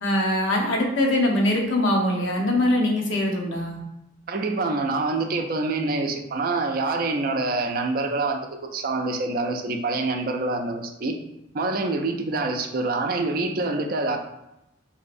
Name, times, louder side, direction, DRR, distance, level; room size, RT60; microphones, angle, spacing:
voice 1, 0.0-3.8, left 1 dB, 80° left, -1 dB, 0.8 m, -22 dB
voice 2, 4.3-11.2 11.5-14.2, right 3 dB, 50° right, 4 dB, 0.4 m, -26 dB
4.1 x 2.7 x 2.5 m, 0.89 s
head